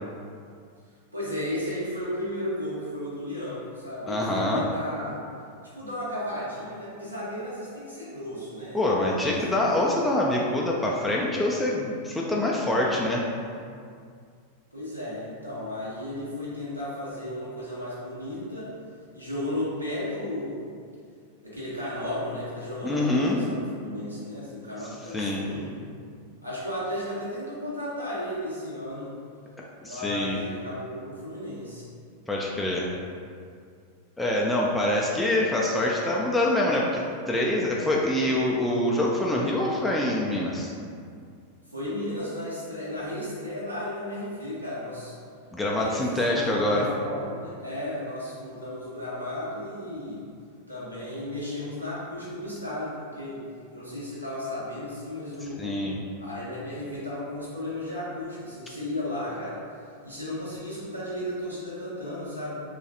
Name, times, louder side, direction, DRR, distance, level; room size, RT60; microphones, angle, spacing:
voice 1, 1.1-5.2 5.7-9.5 14.7-18.7 19.1-20.7 21.4-25.8 26.4-29.1 29.8-31.8 41.7-45.1 45.7-50.2 50.7-53.4 53.7-55.7 56.2-59.6 60.0-62.6, left 1 dB, 90° right, -9 dB, 0.9 m, -34 dB
voice 2, 4.1-4.6 8.7-13.2 22.8-23.4 25.1-25.4 29.8-30.4 32.3-32.9 34.2-37.0 37.3-40.7 45.5-46.9 55.4-56.0, left 1 dB, 10° left, -3 dB, 0.3 m, -25 dB
3.0 x 2.4 x 2.7 m, 2.3 s
figure-of-eight pair, 90°, 0 cm